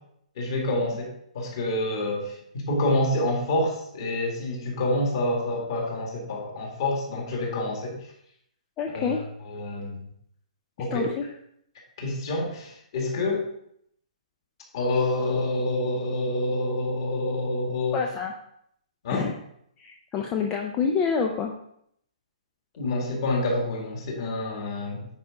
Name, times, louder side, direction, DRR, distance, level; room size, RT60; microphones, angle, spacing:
voice 1, 0.4-8.1 8.9-10.0 10.8-11.1 12.0-13.4 14.7-18.0 19.0-19.3 22.8-25.1, left 1 dB, 35° left, -1 dB, 1.9 m, -27 dB
voice 2, 8.8-9.2 10.9-11.2 17.9-18.3 19.1-19.3 19.8-21.5, left 6 dB, 10° left, 2 dB, 0.3 m, -27 dB
9.5 x 4.8 x 3.9 m, 0.71 s
hypercardioid pair, 180°, 4 cm